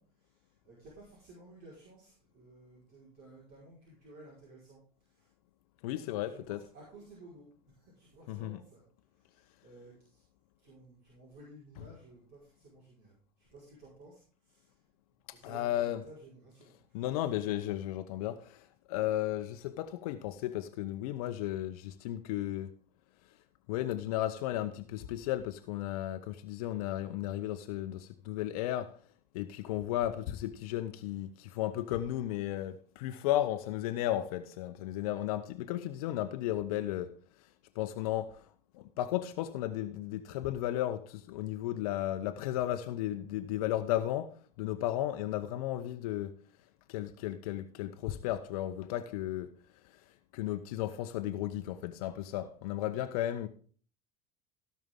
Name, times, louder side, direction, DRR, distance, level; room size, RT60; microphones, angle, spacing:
voice 1, 0.0-4.8 5.1-5.3 6.1-8.8 9.2-10.2 10.6-14.7 15.3-17.3, right 2 dB, 50° right, 5.0 m, -55 dB
voice 2, 5.8-6.6 8.3-8.6 15.3-16.0 16.9-22.7 23.7-29.0 29.3-37.1 37.7-38.5 38.7-46.4 46.9-49.5 50.3-53.5, left 13 dB, 65° left, 0.9 m, -34 dB
17.0 x 5.9 x 3.7 m
figure-of-eight pair, 70°, 20 cm